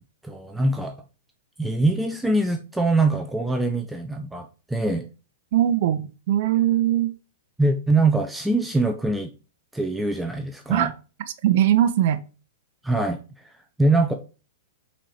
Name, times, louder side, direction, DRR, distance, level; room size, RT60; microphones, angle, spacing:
voice 1, 0.2-1.0 1.6-5.1 7.6-9.3 9.7-10.9 12.8-14.1, right 2 dB, 5° right, 4 dB, 0.5 m, -23 dB
voice 2, 5.5-7.1 10.7-10.9 11.4-12.2, right 11 dB, 45° right, 8 dB, 0.6 m, -20 dB
5.9 x 4.2 x 5.7 m, 0.34 s
supercardioid pair, 170°, 0 cm